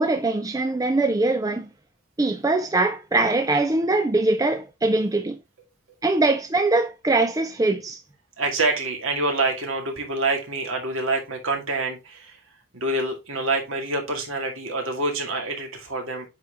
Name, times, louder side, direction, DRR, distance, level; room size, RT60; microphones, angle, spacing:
voice 1, 0.0-1.7 2.2-5.4 6.0-8.0, right 2 dB, 15° right, 0.4 m, -22 dB
voice 2, 8.4-12.4 12.7-16.3, right 2 dB, 60° right, 2.1 m, -26 dB
8.7 x 4.1 x 3.4 m
head